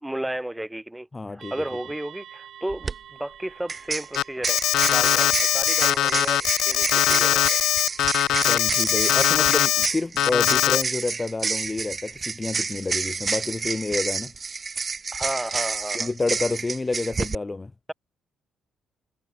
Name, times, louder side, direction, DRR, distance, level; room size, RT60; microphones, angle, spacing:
voice 1, 0.0-4.6 4.9-6.4 6.6-7.6 15.1-16.1, right 1 dB, 5° right, 2.7 m, -33 dB
voice 2, 1.1-1.5 8.4-14.3 15.9-17.7, left 3 dB, 20° left, 0.8 m, -28 dB
sound 1, 1.4-10.1, right 10 dB, 65° right, 5.7 m, -49 dB
sound 2, 2.7-2.9 3.7-17.4, right 5 dB, 35° right, 0.7 m, -29 dB
Alarm, 4.2-9.9 10.2-10.8, left 13 dB, 80° left, 0.4 m, -21 dB
cardioid pair, 90°, 0 cm